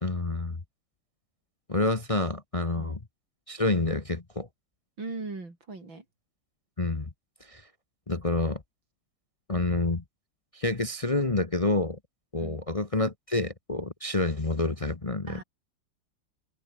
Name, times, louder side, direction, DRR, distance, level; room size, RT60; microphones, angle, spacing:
voice 1, 0.0-0.6 1.7-3.0 3.5-4.5 6.8-7.1 7.4-7.6 8.1-8.6 9.5-10.0 10.5-12.0 12.3-15.4, left 2 dB, 20° left, 1.0 m, -28 dB
voice 2, 5.0-6.0 12.4-12.6 15.3-15.4, right 3 dB, 85° right, 6.1 m, -39 dB
omnidirectional pair, 2.1 m